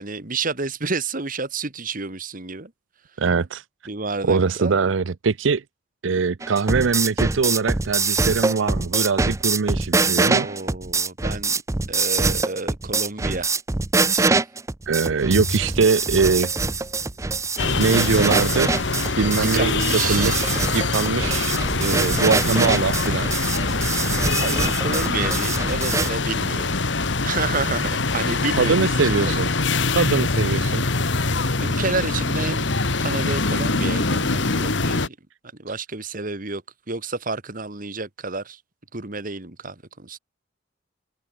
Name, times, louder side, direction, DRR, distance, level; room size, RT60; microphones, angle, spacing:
voice 1, 0.0-2.7 3.9-4.7 10.4-11.6 11.9-13.5 14.1-14.4 19.3-20.5 24.4-26.7 27.2-29.5 31.6-32.7 33.0-35.2 35.6-36.6 36.9-38.6 38.9-40.2, right 3 dB, 45° right, 2.1 m, -30 dB
voice 2, 3.2-3.6 4.2-5.6 6.0-10.5 14.9-16.5 17.8-18.7 19.2-23.3 28.6-29.5 29.9-30.8, right 5 dB, 85° right, 0.6 m, -22 dB
sound 1, 6.4-26.1, right 3 dB, 15° right, 0.5 m, -24 dB
Bowed string instrument, 15.3-17.9, left 1 dB, 45° left, 1.7 m, -34 dB
sound 2, 17.6-35.1, left 3 dB, 65° left, 1.8 m, -24 dB
head